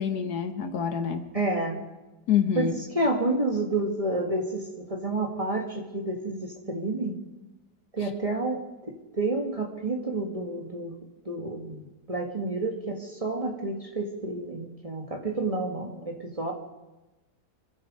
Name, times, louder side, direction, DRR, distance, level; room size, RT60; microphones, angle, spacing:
voice 1, 0.0-1.3 2.3-2.7, left 8 dB, 70° left, 7 dB, 1.6 m, -26 dB
voice 2, 1.3-1.8 2.6-7.2 7.9-10.9 11.3-16.5, right 2 dB, 20° right, 1 dB, 1.8 m, -30 dB
25.5 x 10.5 x 5.3 m, 1.1 s
omnidirectional pair, 1.8 m